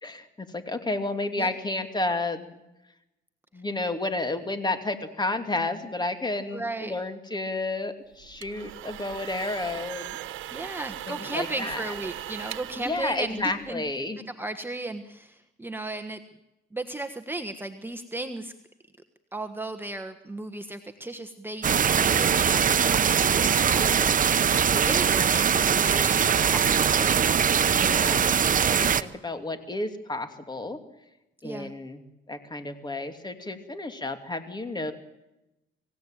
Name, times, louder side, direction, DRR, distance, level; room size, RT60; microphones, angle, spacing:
voice 1, 0.0-2.5 3.5-10.2 11.1-11.9 12.7-14.2 27.8-28.3 28.7-30.8 31.4-32.0 32.3-34.9, left 2 dB, 20° left, 8 dB, 2.8 m, -31 dB
voice 2, 6.5-6.9 10.5-13.8 14.3-16.2 16.7-18.5 19.3-24.1 24.7-27.2 31.4-31.7, right 2 dB, 10° right, 7 dB, 1.4 m, -35 dB
sound 1, 8.2-13.9, right 13 dB, 80° right, 1.2 m, -39 dB
sound 2, 21.6-29.0, right 7 dB, 40° right, 0.9 m, -22 dB
25.5 x 16.5 x 9.2 m, 0.93 s
cardioid pair, 90°, 20 cm